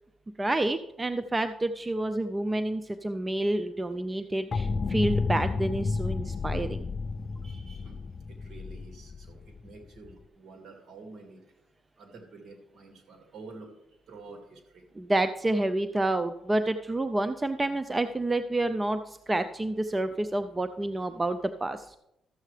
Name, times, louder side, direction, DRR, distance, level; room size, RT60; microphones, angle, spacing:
voice 1, 0.4-6.9 15.0-19.0 19.3-21.8, right 2 dB, 20° right, 10 dB, 0.4 m, -29 dB
sound 1, 4.5-10.2, left 4 dB, 40° left, 0.4 m, -31 dB
voice 2, 7.4-8.0 8.3-11.4 12.0-13.7 14.1-14.8, right 3 dB, 60° right, 4 dB, 2.1 m, -49 dB
13.0 x 7.5 x 3.3 m, 0.84 s
cardioid pair, 90°, 0 cm